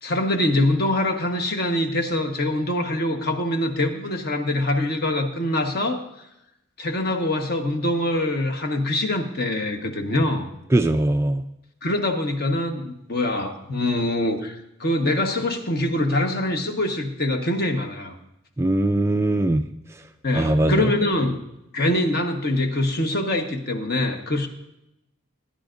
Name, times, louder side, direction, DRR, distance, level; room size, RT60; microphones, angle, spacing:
voice 1, 0.0-6.2 6.8-10.5 11.8-18.1 20.2-21.4 21.7-24.5, left 1 dB, 45° left, 4 dB, 1.2 m, -24 dB
voice 2, 10.7-11.4 18.6-19.6 19.9-20.0 20.3-20.9, right 1 dB, 15° right, 7 dB, 0.3 m, -20 dB
19.0 x 10.5 x 2.6 m, 0.85 s
head